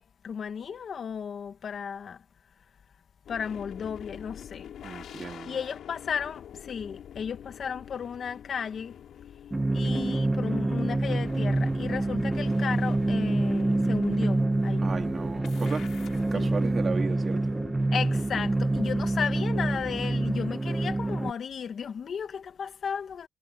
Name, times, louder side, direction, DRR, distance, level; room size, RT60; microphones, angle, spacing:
voice 1, 0.0-2.2 3.3-4.7 5.5-9.0 9.7-14.9 16.3-16.5 17.9-23.3, left 7 dB, 50° left, 2.0 m, -34 dB
sound 1, 3.3-20.2, left 9 dB, 70° left, 6.1 m, -46 dB
voice 2, 4.8-5.6 14.8-15.9 16.3-17.5, right 5 dB, 40° right, 3.0 m, -35 dB
sound 2, 9.5-21.3, right 2 dB, 15° right, 1.8 m, -27 dB
cardioid pair, 90°, 0 cm